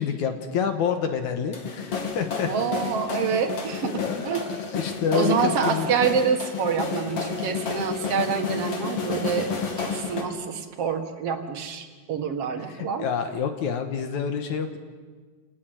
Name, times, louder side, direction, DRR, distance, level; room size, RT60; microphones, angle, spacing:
voice 1, 0.0-2.5 3.1-3.3 3.8-5.9 12.6-14.8, left 7 dB, 70° left, 6 dB, 2.6 m, -28 dB
sound 1, 1.5-10.2, left 5 dB, 50° left, 3.5 m, -31 dB
voice 2, 2.4-4.5 5.1-9.5 9.8-13.1, right 6 dB, 50° right, 6 dB, 2.5 m, -27 dB
28.5 x 19.5 x 7.8 m, 1.5 s
omnidirectional pair, 3.7 m